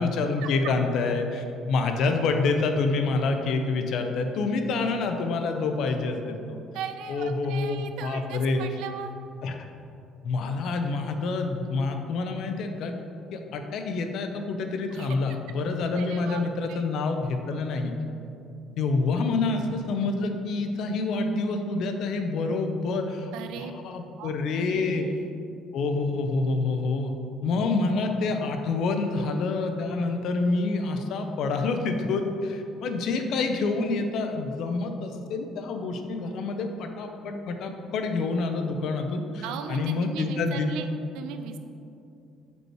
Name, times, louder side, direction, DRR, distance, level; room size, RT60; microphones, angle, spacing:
voice 1, 0.0-6.6 7.1-8.6 9.4-9.6 10.2-13.0 13.3-18.0 18.8-23.3 23.6-25.1 25.7-27.1 27.4-39.4 39.7-40.7, left 3 dB, 55° left, 6 dB, 0.5 m, -27 dB
voice 2, 6.7-9.1 14.9-15.1 15.9-16.9 23.3-23.8 24.2-24.3 24.6-25.3 39.4-40.9 41.1-41.6, right 7 dB, 80° right, 8 dB, 0.4 m, -38 dB
5.2 x 4.5 x 4.6 m, 2.6 s
cardioid pair, 175°, 0 cm